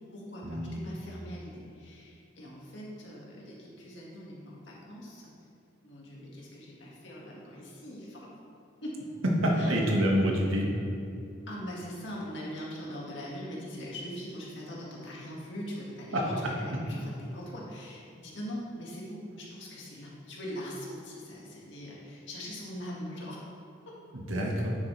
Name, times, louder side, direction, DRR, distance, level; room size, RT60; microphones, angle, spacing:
voice 1, 0.1-5.3 5.8-8.3 8.8-9.0 9.6-9.8 11.5-23.4, equal, 65° left, -4 dB, 2.0 m, -41 dB
voice 2, 9.4-10.7 16.1-16.2 24.1-24.7, equal, 90° right, -1 dB, 1.5 m, -27 dB
9.5 x 7.4 x 3.3 m, 2.6 s
head